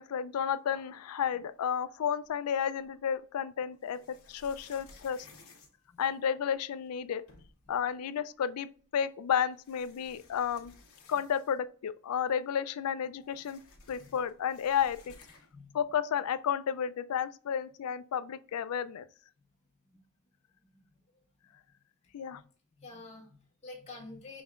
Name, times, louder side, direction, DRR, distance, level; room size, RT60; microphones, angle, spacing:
voice 1, 0.0-5.3 6.0-7.2 7.7-10.7 11.1-13.6 13.9-15.1 15.7-19.1 22.1-22.4, left 8 dB, 80° left, 0.4 m, -32 dB
sound 1, 2.2-3.0 3.8-6.5 7.0-7.1 7.3-7.8 8.8-8.9 9.5-11.7 12.0-12.1 12.4-15.7, left 3 dB, 65° left, 1.1 m, -57 dB
voice 2, 5.9-6.2 7.6-7.7 11.1-11.2 13.9-14.2 15.5-15.9 19.4-19.5 21.1-21.2 22.3-22.4 22.8-24.4, left 3 dB, 30° left, 1.5 m, -49 dB
5.4 x 3.4 x 2.4 m
head